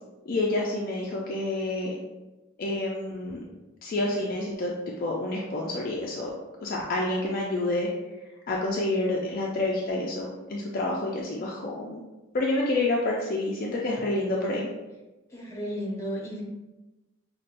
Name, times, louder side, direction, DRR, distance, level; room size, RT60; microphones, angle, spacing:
voice 1, 0.3-1.9 2.6-3.4 3.8-6.3 6.6-7.9 8.5-12.0 12.3-14.7, left 2 dB, 45° left, -3 dB, 0.4 m, -28 dB
voice 2, 15.3-16.4, equal, 15° left, -4 dB, 0.9 m, -33 dB
5.3 x 2.2 x 2.5 m, 1.1 s
head